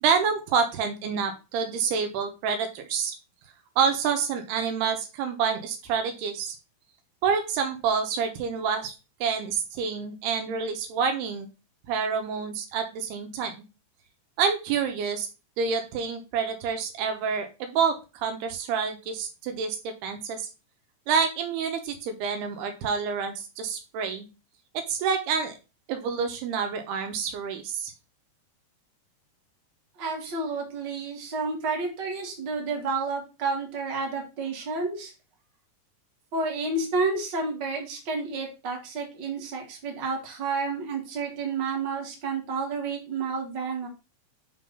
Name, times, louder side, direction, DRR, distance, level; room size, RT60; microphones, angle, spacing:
voice 1, 0.0-3.1 3.8-6.6 7.2-8.9 9.2-11.5 11.9-13.5 14.4-15.3 15.6-20.5 21.1-24.3 24.9-25.5 25.9-27.9, right 6 dB, 80° right, 6 dB, 3.0 m, -28 dB
voice 2, 30.0-35.1 36.3-43.9, right 4 dB, 40° right, 0 dB, 1.8 m, -30 dB
6.3 x 3.8 x 5.4 m, 0.30 s
omnidirectional pair, 4.7 m